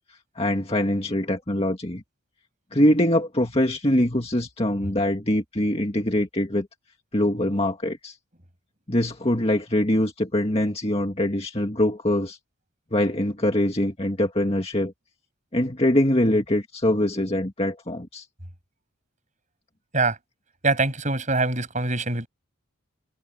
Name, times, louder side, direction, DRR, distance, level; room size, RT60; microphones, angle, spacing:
voice 1, 0.4-2.0 2.7-6.7 7.1-8.2 8.9-12.4 12.9-14.9 15.5-18.3, left 1 dB, 30° left, 2.0 m, -23 dB
voice 2, 20.6-22.3, right 3 dB, 35° right, 7.4 m, -23 dB
head